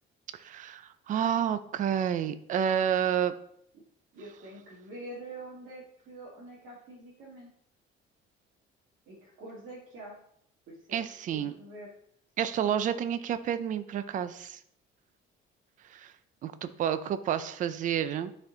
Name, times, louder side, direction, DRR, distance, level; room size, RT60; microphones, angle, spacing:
voice 1, 0.4-3.3 10.9-11.5 12.4-14.6 15.9-16.1 16.4-18.3, right 9 dB, 40° right, 12 dB, 0.4 m, -29 dB
voice 2, 4.1-7.5 9.1-10.2 10.7-11.0 11.3-11.9, right 1 dB, 70° right, -6 dB, 1.8 m, -45 dB
9.6 x 4.3 x 3.8 m, 0.71 s
cardioid pair, 170°, 21 cm